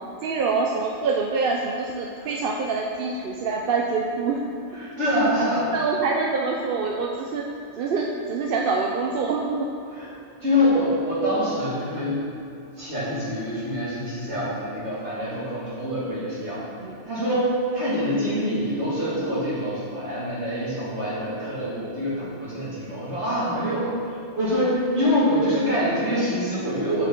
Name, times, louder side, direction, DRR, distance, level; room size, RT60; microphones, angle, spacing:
voice 1, 0.2-4.4 5.4-7.4 7.8-9.7 16.8-17.0 22.2-22.4, right 4 dB, 60° right, 0 dB, 0.7 m, -25 dB
voice 2, 4.7-5.7 9.9-10.1 10.4-12.2 12.8-16.6 17.1-27.1, equal, 80° right, -8 dB, 2.7 m, -25 dB
8.0 x 7.9 x 3.8 m, 2.5 s
omnidirectional pair, 1.2 m